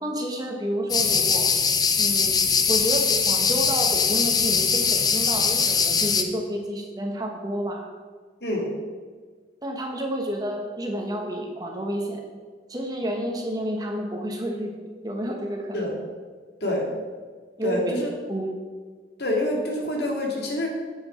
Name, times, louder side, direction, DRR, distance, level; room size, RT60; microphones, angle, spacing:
voice 1, 0.0-1.5 2.0-2.4 2.7-7.9 9.6-12.2 12.7-14.8 15.0-15.8 16.6-16.8 17.6-17.9 18.3-18.5, equal, 20° right, 1 dB, 1.2 m, -30 dB
sound 1, 0.9-6.2, left 5 dB, 20° left, 0.6 m, -21 dB
voice 2, 17.6-18.1 19.2-20.7, left 1 dB, 70° left, 0 dB, 2.2 m, -26 dB
7.8 x 7.8 x 5.7 m, 1.5 s
head